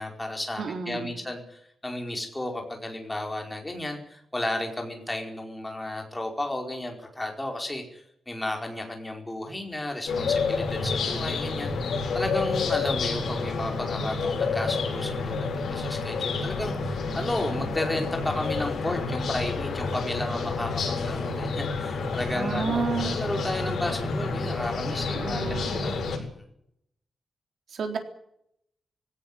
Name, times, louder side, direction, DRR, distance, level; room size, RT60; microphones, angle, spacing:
voice 1, 0.0-26.3, left 1 dB, 10° left, 2 dB, 4.9 m, -33 dB
voice 2, 0.6-1.1 22.3-23.2 25.1-26.3 27.7-28.0, right 5 dB, 80° right, 5 dB, 3.8 m, -31 dB
sound 1, 10.1-26.2, left 4 dB, 85° left, 7.3 m, -29 dB
sound 2, 19.4-25.0, left 3 dB, 40° left, 5.8 m, -49 dB
19.5 x 17.0 x 9.9 m, 0.74 s
wide cardioid pair, 145°, 0 cm